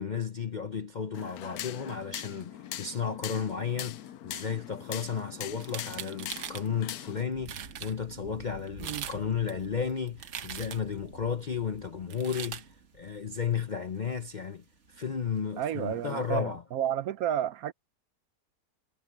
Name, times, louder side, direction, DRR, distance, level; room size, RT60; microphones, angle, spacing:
voice 1, 0.0-12.6 12.9-14.6 14.9-16.6, left 6 dB, 45° left, 0.6 m, -33 dB
sound 1, 1.1-7.2, left 12 dB, 70° left, 1.2 m, -41 dB
sound 2, 5.5-6.7 7.2-7.3 7.5-7.9 8.7-9.2 9.5-11.0 12.1-12.6, right 9 dB, 85° right, 1.6 m, -40 dB
sound 3, 7.3-16.4, right 3 dB, 45° right, 2.1 m, -52 dB
voice 2, 15.6-17.7, right 10 dB, 70° right, 1.0 m, -31 dB
omnidirectional pair, 1.7 m